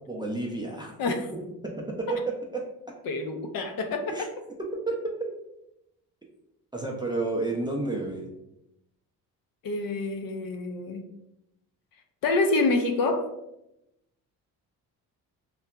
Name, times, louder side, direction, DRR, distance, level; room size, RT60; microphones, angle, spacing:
voice 1, 0.1-1.0 1.3-2.7 4.1-4.3 4.6-4.9 5.2-5.3 6.7-8.3, right 3 dB, 10° right, -2 dB, 0.4 m, -31 dB
voice 2, 3.1-4.1 9.6-11.0 12.2-13.3, left 3 dB, 55° left, 6 dB, 0.5 m, -27 dB
2.7 x 2.2 x 2.2 m, 0.84 s
supercardioid pair, 65°, 41 cm